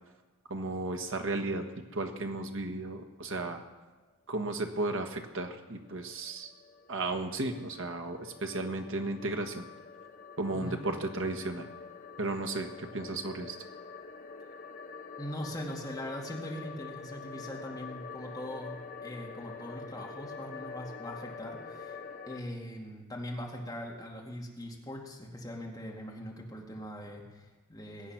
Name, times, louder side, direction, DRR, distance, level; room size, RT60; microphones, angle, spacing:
voice 1, 0.5-1.6 1.9-3.6 4.3-6.5 6.9-9.6 10.4-11.7 12.2-13.6, right 2 dB, 60° right, 4 dB, 1.5 m, -34 dB
sound 1, 5.6-22.4, left 5 dB, 40° left, 0.9 m, -46 dB
voice 2, 10.5-10.8 15.2-22.0 22.3-28.1, equal, 15° left, -1 dB, 2.2 m, -41 dB
21.5 x 8.6 x 6.0 m, 1.2 s
head